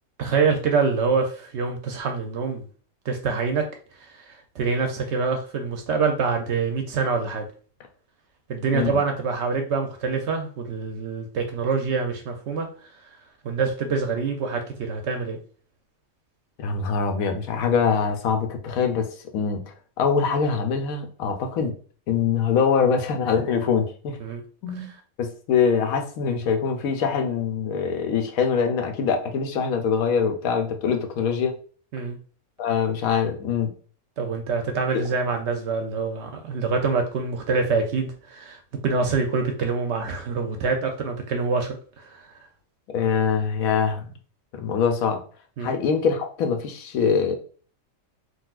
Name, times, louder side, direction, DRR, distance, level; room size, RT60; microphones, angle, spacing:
voice 1, 0.2-2.7 3.0-7.5 8.5-13.2 13.4-15.4 24.2-24.4 24.7-25.0 31.9-32.2 34.2-42.5 45.6-45.8, right 4 dB, 65° right, 4 dB, 0.7 m, -26 dB
voice 2, 16.6-19.1 19.3-19.6 20.0-21.7 22.1-24.2 24.6-24.9 25.2-31.5 32.6-33.7 34.9-35.0 42.9-44.1 44.5-45.2 45.6-47.4, left 6 dB, 90° left, 5 dB, 1.1 m, -23 dB
3.9 x 2.4 x 2.4 m, 0.42 s
omnidirectional pair, 1.4 m